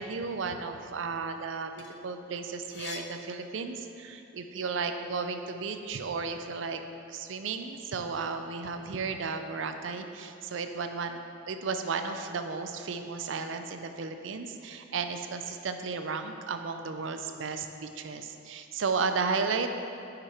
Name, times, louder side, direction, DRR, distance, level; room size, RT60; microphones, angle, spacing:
voice 1, 0.0-6.8 7.1-11.2 11.5-19.7, right 4 dB, 80° right, 7 dB, 0.5 m, -34 dB
sound 1, 1.5-4.2 4.6-6.0, left 6 dB, 60° left, 0.5 m, -47 dB
6.3 x 6.0 x 4.4 m, 2.6 s
head